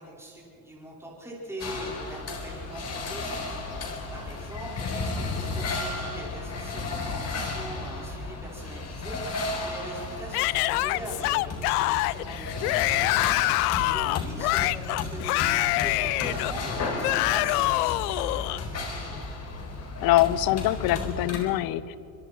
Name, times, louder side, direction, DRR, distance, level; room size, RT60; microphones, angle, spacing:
voice 1, 0.0-3.4 4.1-9.2 9.6-13.2 13.9-19.2, right 1 dB, 5° right, -4 dB, 5.6 m, -41 dB
sound 1, 1.6-21.4, left 3 dB, 35° left, 4.2 m, -34 dB
Yell / Screaming, 10.3-18.6, left 20 dB, 75° left, 0.6 m, -25 dB
voice 2, 13.8-14.2 20.0-22.0, left 14 dB, 50° left, 17 dB, 0.9 m, -24 dB
25.0 x 22.5 x 4.7 m, 2.7 s
supercardioid pair, 110°, 46 cm